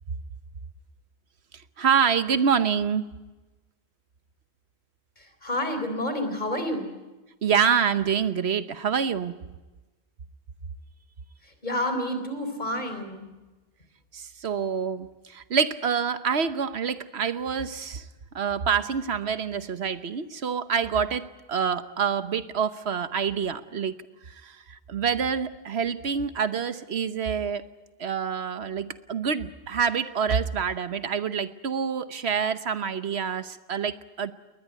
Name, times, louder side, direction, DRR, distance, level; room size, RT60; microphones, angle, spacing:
voice 1, 1.8-3.1 7.4-9.5 14.1-18.0 18.3-24.0 24.3-27.6 28.0-34.3, right 7 dB, 75° right, 12 dB, 1.2 m, -27 dB
voice 2, 5.2-6.9 11.4-13.3, left 1 dB, 45° left, 7 dB, 4.0 m, -29 dB
20.5 x 20.5 x 9.4 m, 1.2 s
omnidirectional pair, 1.1 m